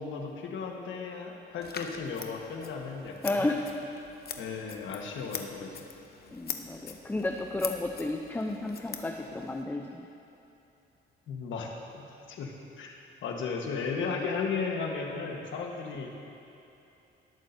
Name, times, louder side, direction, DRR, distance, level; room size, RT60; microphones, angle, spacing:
voice 1, 0.0-3.4 4.4-5.8 11.3-11.7 11.9-12.0 12.3-12.9 13.2-16.1, left 5 dB, 75° left, 1 dB, 1.4 m, -35 dB
Scissors, 1.6-9.6, left 7 dB, 50° left, 0.8 m, -43 dB
voice 2, 3.2-3.7 6.3-10.1, left 2 dB, 10° left, 2 dB, 0.6 m, -32 dB
18.5 x 8.4 x 2.7 m, 2.9 s
cardioid pair, 90°, 20 cm